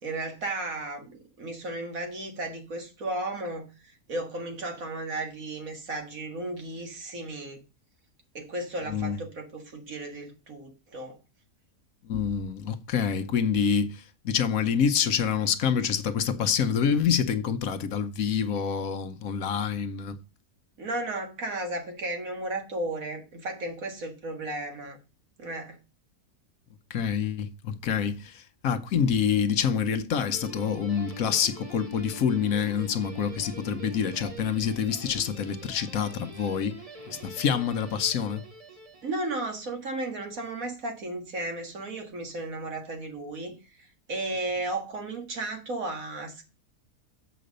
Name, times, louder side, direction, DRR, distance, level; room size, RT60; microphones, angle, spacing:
voice 1, 0.0-7.6 8.3-11.2 20.8-25.0 25.4-25.8 39.0-46.5, right 2 dB, 65° right, 2.2 m, -34 dB
voice 2, 8.9-9.2 12.0-20.2 26.9-36.8 37.1-38.4, left 7 dB, 70° left, 1.2 m, -27 dB
Guitar, 30.3-39.6, equal, 25° right, 1.6 m, -45 dB
7.6 x 5.1 x 6.5 m
omnidirectional pair, 1.6 m